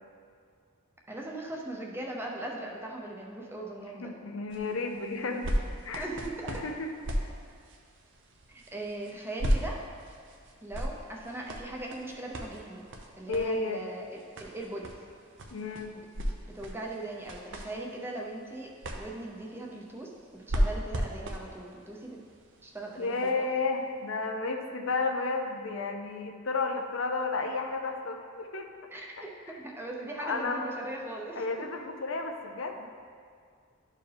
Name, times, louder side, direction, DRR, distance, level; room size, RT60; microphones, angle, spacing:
voice 1, 1.1-4.1 6.0-6.6 8.5-9.8 10.6-12.8 13.2-14.9 16.5-22.2 22.6-23.5 28.9-31.6, right 2 dB, 10° right, -1 dB, 0.7 m, -39 dB
voice 2, 3.9-5.5 5.8-6.1 6.5-6.9 13.3-13.8 15.5-15.9 23.0-28.7 30.2-30.6 31.4-32.9, left 3 dB, 65° left, 4 dB, 0.6 m, -32 dB
RG Puppet kung-fu, 4.5-23.3 24.0-24.1, equal, 60° right, 0.8 m, -36 dB
12.0 x 4.5 x 3.4 m, 2.1 s
head